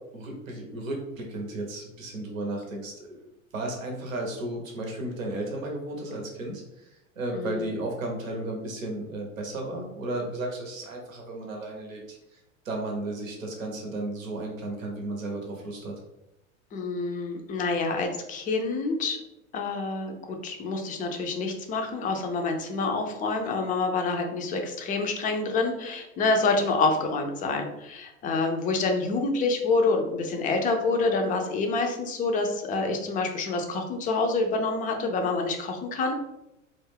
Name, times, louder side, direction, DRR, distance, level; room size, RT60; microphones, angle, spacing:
voice 1, 0.1-3.2 3.5-12.4 12.6-15.9, right 2 dB, 90° right, 1 dB, 0.7 m, -34 dB
voice 2, 7.3-7.7 16.7-19.2 19.5-36.1, left 3 dB, 20° left, 3 dB, 0.4 m, -27 dB
2.3 x 2.1 x 3.3 m, 0.91 s
hypercardioid pair, 85°, 39 cm